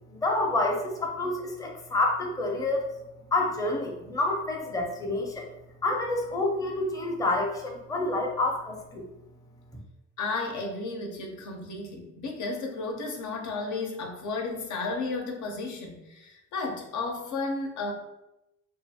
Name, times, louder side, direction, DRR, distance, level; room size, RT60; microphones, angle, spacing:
voice 1, 0.1-2.9 3.3-5.5 5.8-9.1 9.7-9.8, left 2 dB, 10° left, 0 dB, 0.5 m, -28 dB
voice 2, 10.2-17.9, left 3 dB, 75° left, 2 dB, 0.6 m, -33 dB
2.4 x 2.4 x 2.6 m, 0.92 s
cardioid pair, 90°, 30 cm